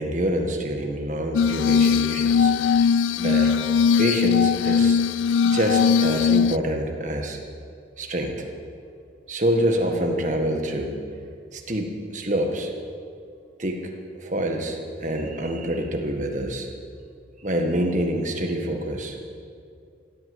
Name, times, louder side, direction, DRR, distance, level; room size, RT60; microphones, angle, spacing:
voice 1, 0.0-2.5 3.2-3.5 4.0-5.0 5.4-7.4 8.0-8.5 9.3-11.0 11.5-12.7 13.6-16.7 17.4-19.1, right 1 dB, 40° right, 2 dB, 1.7 m, -26 dB
Glass, 1.3-6.6, left 6 dB, 80° left, 0.3 m, -20 dB
16.0 x 9.7 x 7.9 m, 2.4 s
head